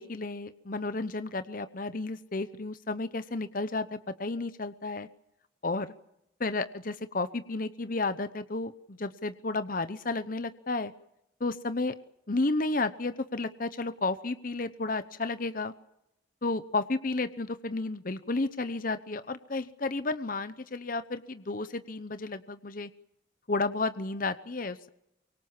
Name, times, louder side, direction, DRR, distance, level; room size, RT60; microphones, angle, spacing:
voice 1, 0.0-5.1 5.6-5.9 6.4-10.9 11.4-11.9 12.3-15.7 16.4-22.9 23.5-24.9, left 3 dB, 45° left, 12 dB, 0.9 m, -32 dB
24.5 x 23.5 x 7.3 m, 0.82 s
head